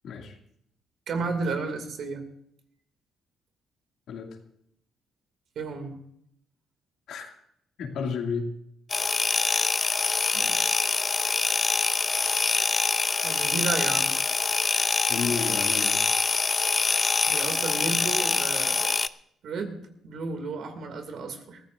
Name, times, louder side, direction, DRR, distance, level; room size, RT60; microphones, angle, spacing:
voice 1, 0.0-0.4 1.2-1.3 4.1-4.4 7.1-7.3 7.8-8.5 15.1-16.0, left 5 dB, 75° left, 2 dB, 2.4 m, -32 dB
voice 2, 1.1-2.2 5.6-6.0 10.3-10.7 13.2-14.1 17.3-18.9 19.4-19.8 20.0-21.6, right 4 dB, 70° right, 6 dB, 2.5 m, -32 dB
sound 1, 8.9-19.1, left 4 dB, 30° left, 0.5 m, -25 dB
22.5 x 15.0 x 2.6 m, 0.73 s
cardioid pair, 90°, 0 cm